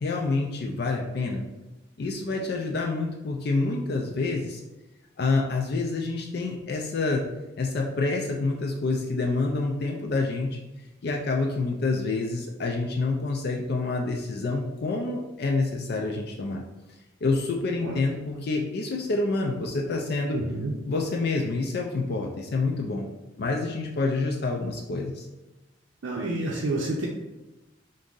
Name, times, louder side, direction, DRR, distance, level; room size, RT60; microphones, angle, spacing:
voice 1, 0.0-1.4 2.0-4.6 5.2-7.2 7.6-10.6 11.0-16.6 17.2-20.4 20.9-23.1 23.4-25.3, left 3 dB, 55° left, 0 dB, 0.4 m, -27 dB
voice 2, 20.3-20.7 26.0-27.1, right 2 dB, 80° right, -3 dB, 0.5 m, -29 dB
3.6 x 2.6 x 3.7 m, 1.0 s
head